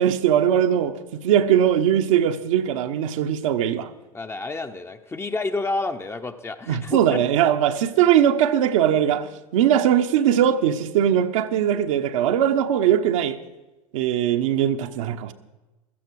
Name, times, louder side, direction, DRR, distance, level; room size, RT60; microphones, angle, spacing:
voice 1, 0.0-3.9 6.7-13.4 13.9-15.3, right 10 dB, 60° right, 1.1 m, -20 dB
voice 2, 4.1-7.2, left 3 dB, 15° left, 0.9 m, -29 dB
16.0 x 13.5 x 4.8 m
hypercardioid pair, 90°, 18 cm